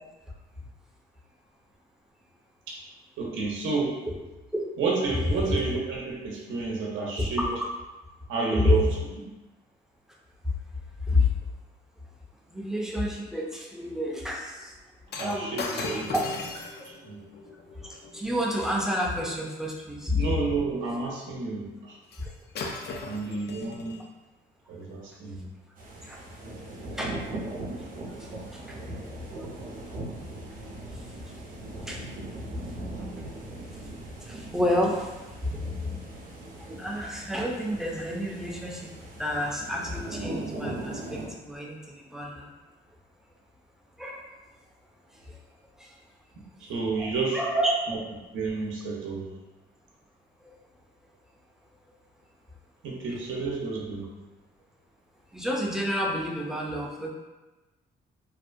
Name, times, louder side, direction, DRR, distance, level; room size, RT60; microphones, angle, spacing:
voice 1, 3.2-3.9 4.8-7.5 8.3-8.9 9.2-9.3 15.2-16.1 16.8-17.2 20.1-22.0 23.0-24.0 24.7-25.4 28.0-28.1 46.4-47.4 47.9-48.0 48.3-49.2 52.8-54.1, right 4 dB, 80° right, -3 dB, 0.6 m, -30 dB
voice 2, 7.2-7.6 8.5-8.8 11.1-11.3 12.5-14.7 15.2-16.2 17.9-20.1 26.1-26.2 27.0-27.1 28.7-28.8 31.9-32.0 34.3-35.1 35.4-35.6 36.8-38.9 39.2-41.8 42.1-42.5 44.0-44.2 47.0-47.8 55.3-57.1, left 1 dB, ahead, -2 dB, 0.5 m, -29 dB
Shatter, 15.1-19.5 22.1-22.3 22.6-24.1 24.8-24.9, left 3 dB, 55° left, 0.4 m, -38 dB
sound 1, 25.8-41.3, right 1 dB, 45° right, 0.6 m, -39 dB
2.6 x 2.1 x 2.5 m, 1.1 s
cardioid pair, 90°, 20 cm